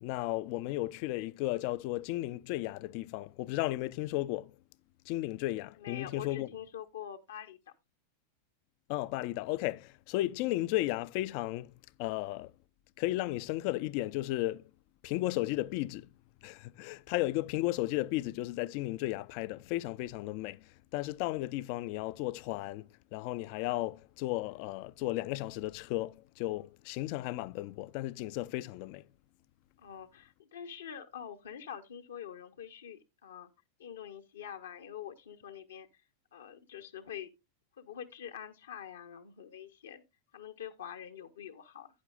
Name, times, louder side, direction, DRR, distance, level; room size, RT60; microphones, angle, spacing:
voice 1, 0.0-4.5 5.1-6.5 8.9-11.7 12.0-12.5 13.0-14.6 15.0-16.1 16.4-29.0, left 17 dB, 45° left, 0.4 m, -34 dB
voice 2, 5.8-7.6 29.8-33.5 33.8-35.9 36.3-37.3 37.8-40.0 40.3-41.9, left 9 dB, 65° left, 0.9 m, -45 dB
11.5 x 9.7 x 2.4 m
figure-of-eight pair, 90°, 0 cm